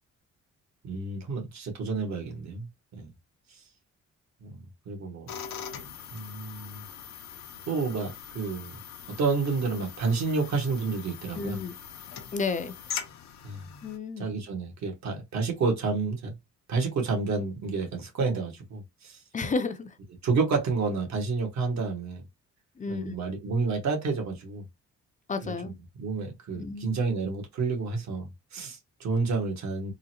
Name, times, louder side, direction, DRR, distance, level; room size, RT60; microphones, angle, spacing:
voice 1, 0.8-2.7 3.0-3.1 4.4-5.3 6.1-6.8 7.7-8.7 9.2-11.6 13.4-13.6 14.2-16.3 16.7-19.2 20.2-22.2 22.9-24.7 25.4-25.7 26.0-29.9, right 4 dB, 65° right, 1.5 m, -30 dB
sound 1, 5.3-14.0, left 8 dB, 65° left, 0.7 m, -42 dB
voice 2, 11.3-11.7 12.3-12.7 13.8-14.3 19.3-19.9 22.8-23.1 25.3-25.7 26.6-27.0, left 4 dB, 25° left, 0.5 m, -31 dB
3.8 x 2.1 x 2.8 m
cardioid pair, 90°, 30 cm